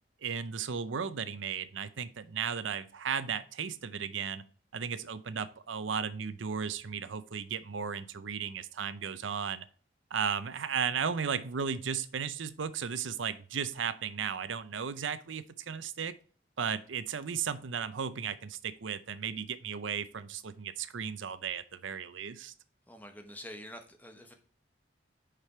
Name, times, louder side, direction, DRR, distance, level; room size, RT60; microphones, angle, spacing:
voice 1, 0.2-4.4 4.7-9.6 10.1-16.1 16.6-22.5, right 7 dB, 90° right, 14 dB, 0.6 m, -35 dB
voice 2, 22.9-24.3, equal, 10° left, 5 dB, 0.9 m, -47 dB
6.8 x 5.0 x 4.4 m, 0.41 s
head